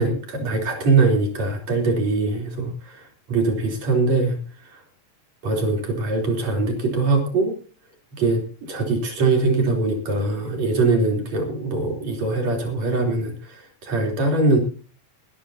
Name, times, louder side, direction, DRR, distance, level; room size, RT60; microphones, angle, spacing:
voice 1, 0.0-4.8 5.4-7.5 8.2-14.6, right 3 dB, 65° right, 2 dB, 4.9 m, -22 dB
22.5 x 12.0 x 2.8 m, 0.37 s
omnidirectional pair, 3.3 m